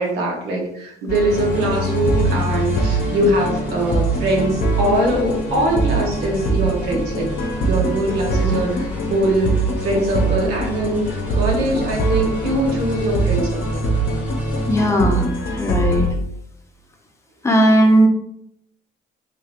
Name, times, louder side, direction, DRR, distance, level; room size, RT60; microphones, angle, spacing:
voice 1, 0.0-7.3 7.6-8.7 9.1-9.5 9.8-13.9, right 1 dB, 90° right, 0 dB, 1.0 m, -22 dB
sound 1, 1.1-16.1, right 1 dB, 60° left, 0.7 m, -23 dB
sound 2, 1.3-14.9, equal, 10° right, 1.3 m, -30 dB
voice 2, 14.7-15.3 15.5-16.1 17.4-18.1, equal, 15° left, 2 dB, 0.6 m, -16 dB
3.6 x 3.0 x 2.5 m, 0.75 s
cardioid pair, 110°, 17 cm